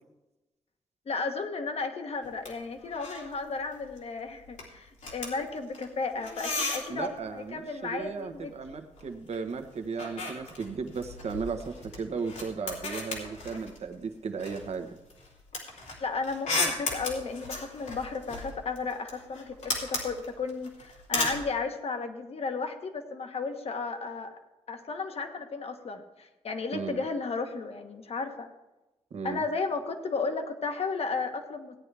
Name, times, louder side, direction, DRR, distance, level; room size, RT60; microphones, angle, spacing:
voice 1, 1.1-8.5 16.0-24.3 24.7-28.5 29.2-31.8, left 4 dB, 60° left, 6 dB, 1.3 m, -34 dB
sound 1, 2.2-2.5 2.8-3.4 3.6-4.0 4.3-7.2 8.3-9.4 9.7-13.9 14.4-21.4, left 3 dB, 85° left, 3.3 m, -35 dB
voice 2, 6.9-14.9 26.7-27.0 29.1-29.4, right 5 dB, 65° right, 7 dB, 1.2 m, -35 dB
16.5 x 9.6 x 3.4 m, 1.0 s
wide cardioid pair, 110°, 12 cm